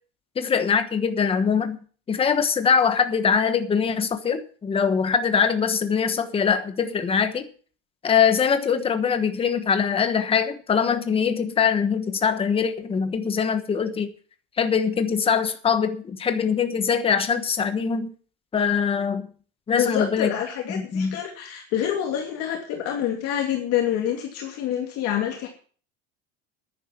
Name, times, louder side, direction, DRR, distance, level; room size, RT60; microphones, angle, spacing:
voice 1, 0.4-1.8 2.1-7.5 8.0-14.1 14.6-18.1 18.5-19.3 19.7-20.3 20.9-21.2, left 6 dB, 15° left, 8 dB, 1.2 m, -22 dB
voice 2, 19.7-25.5, left 10 dB, 45° left, 0 dB, 2.8 m, -27 dB
10.5 x 10.0 x 7.2 m, 0.42 s
cardioid pair, 180°, 34 cm